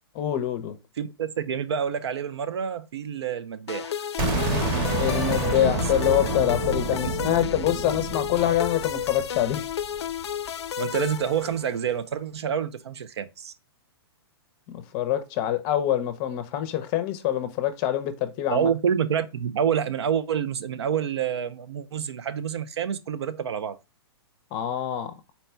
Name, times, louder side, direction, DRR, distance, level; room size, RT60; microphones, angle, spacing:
voice 1, 0.2-0.7 4.9-9.7 14.7-18.7 24.5-25.1, left 11 dB, 30° left, 0.6 m, -25 dB
voice 2, 1.0-3.9 7.0-7.1 10.8-13.5 18.5-23.8, right 8 dB, 80° right, 0.5 m, -28 dB
sound 1, 3.7-11.9, left 9 dB, 85° left, 0.4 m, -32 dB
sound 2, 4.2-10.0, right 2 dB, 35° right, 1.1 m, -29 dB
4.2 x 2.2 x 4.2 m
hypercardioid pair, 145°, 14 cm